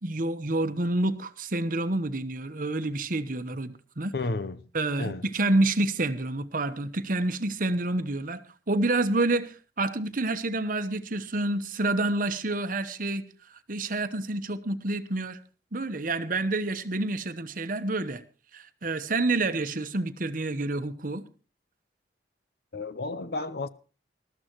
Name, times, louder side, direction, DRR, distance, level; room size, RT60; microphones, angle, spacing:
voice 1, 0.0-4.1 4.7-8.4 8.7-13.2 13.7-15.4 15.7-18.2 18.5-21.2, right 2 dB, 50° right, 1.0 m, -28 dB
voice 2, 4.1-4.6 5.0-5.3 22.7-23.7, left 3 dB, 60° left, 0.8 m, -32 dB
20.5 x 13.0 x 3.1 m
head